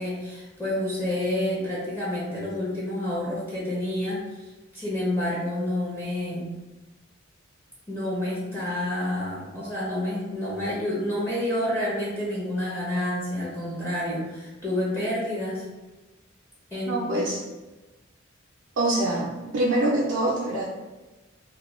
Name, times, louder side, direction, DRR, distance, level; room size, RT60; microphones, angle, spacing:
voice 1, 0.0-4.2 4.7-6.5 7.9-15.6 16.7-17.2, left 1 dB, 15° left, -7 dB, 0.6 m, -29 dB
voice 2, 16.9-17.4 18.8-20.6, right 1 dB, 65° right, -4 dB, 0.4 m, -25 dB
2.2 x 2.2 x 3.0 m, 1.1 s
head